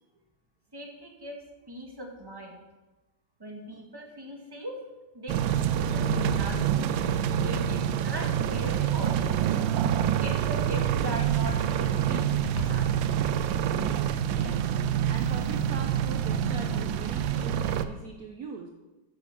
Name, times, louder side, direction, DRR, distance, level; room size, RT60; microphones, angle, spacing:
voice 1, 0.7-1.4 1.7-2.5 3.4-4.7 5.1-6.8 7.4-9.7 10.2-12.9, right 1 dB, 15° right, 0 dB, 1.6 m, -39 dB
sound 1, 5.3-17.9, right 9 dB, 85° right, 1.3 m, -26 dB
voice 2, 14.4-14.7 15.1-18.7, right 5 dB, 60° right, 3 dB, 1.1 m, -41 dB
9.6 x 6.6 x 6.9 m, 1.1 s
omnidirectional pair, 2.0 m